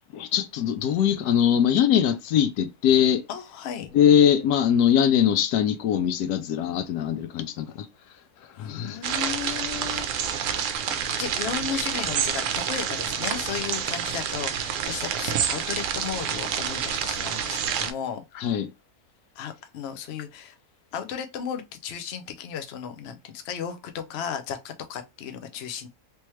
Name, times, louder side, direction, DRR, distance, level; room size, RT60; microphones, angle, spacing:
voice 1, 0.1-3.2 3.9-7.9 8.6-9.0 18.4-18.7, left 9 dB, 85° left, 1.1 m, -22 dB
voice 2, 3.3-3.9 8.6-10.1 10.4-10.7 11.2-18.2 19.4-20.6 20.9-25.9, left 8 dB, 55° left, 0.7 m, -34 dB
sound 1, 9.0-17.9, right 8 dB, 70° right, 0.8 m, -28 dB
3.4 x 3.0 x 3.0 m
omnidirectional pair, 1.6 m